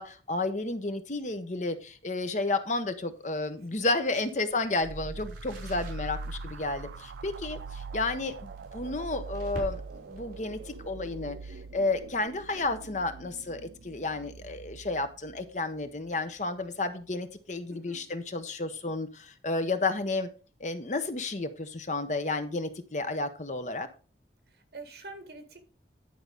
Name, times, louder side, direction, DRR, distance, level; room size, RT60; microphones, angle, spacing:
voice 1, 0.0-20.3 20.6-23.9, left 2 dB, 40° left, 9 dB, 0.8 m, -32 dB
sound 1, 2.2-12.8, right 1 dB, 50° right, 3.9 m, -51 dB
voice 2, 3.7-4.1 17.7-18.0 24.5-25.6, right 2 dB, 65° right, 8 dB, 2.0 m, -46 dB
sound 2, 4.8-16.2, right 3 dB, 85° right, 0.5 m, -42 dB
10.5 x 4.7 x 5.2 m, 0.36 s
head